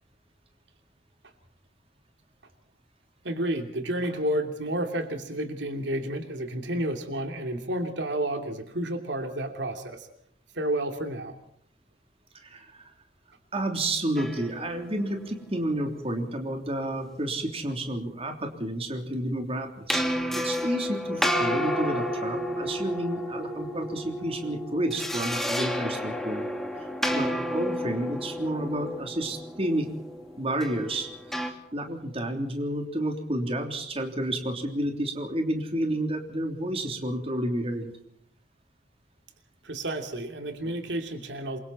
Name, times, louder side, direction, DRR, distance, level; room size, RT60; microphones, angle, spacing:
voice 1, 3.2-10.1 10.5-11.4 39.6-41.6, right 1 dB, 75° right, 5 dB, 2.9 m, -31 dB
voice 2, 12.4-12.9 13.5-26.5 27.1-29.9 30.4-37.9, right 1 dB, 35° right, 4 dB, 3.3 m, -30 dB
sound 1, 14.2-16.3 19.9-31.5, equal, ahead, 2.7 m, -31 dB
28.0 x 24.0 x 4.3 m, 0.68 s
head